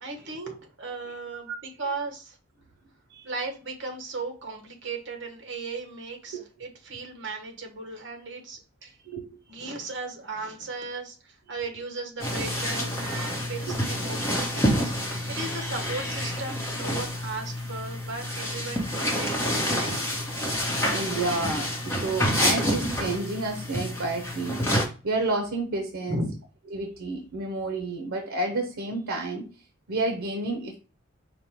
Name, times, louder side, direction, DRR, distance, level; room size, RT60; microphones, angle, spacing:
voice 1, 0.0-2.4 3.2-8.9 9.5-14.9 15.3-20.0 24.5-24.6 26.1-26.4, right 3 dB, 60° right, 3 dB, 1.2 m, -36 dB
voice 2, 9.0-9.4 13.7-13.8 20.9-24.6 25.0-26.2 26.7-29.5 29.9-30.8, right 2 dB, 85° right, 5 dB, 0.7 m, -30 dB
sound 1, 12.2-24.8, equal, 10° left, 0.9 m, -28 dB
5.1 x 2.2 x 4.4 m, 0.34 s
head